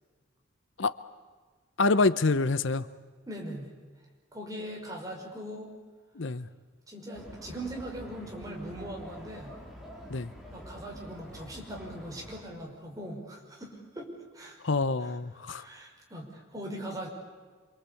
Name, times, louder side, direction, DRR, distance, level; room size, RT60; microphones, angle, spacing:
voice 1, 1.8-2.9 6.2-6.5 10.1-10.3 14.6-15.6, left 3 dB, 70° left, 14 dB, 0.8 m, -26 dB
voice 2, 3.3-3.7 4.3-5.7 6.9-9.5 10.5-14.6 15.0-15.1 15.5-17.1, right 1 dB, 15° right, 0 dB, 5.5 m, -40 dB
sound 1, 7.1-12.4, equal, ahead, 4.2 m, -47 dB
27.5 x 25.0 x 8.5 m, 1.5 s
head